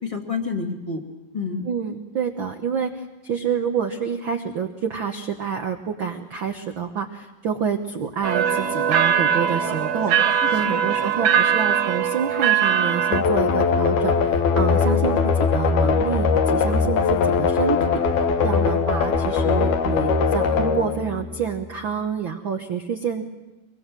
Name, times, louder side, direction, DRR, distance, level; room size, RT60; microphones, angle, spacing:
voice 1, 0.0-1.0 1.3-1.7 10.6-10.9 14.8-15.1 18.7-18.9, left 4 dB, 15° left, 3 dB, 1.5 m, -29 dB
voice 2, 1.6-23.2, right 7 dB, 85° right, 4 dB, 1.0 m, -28 dB
sound 1, 8.2-13.2, right 8 dB, 65° right, 1.7 m, -21 dB
sound 2, 13.1-21.8, left 5 dB, 60° left, 2.5 m, -21 dB
25.5 x 22.0 x 7.6 m, 1.1 s
omnidirectional pair, 4.1 m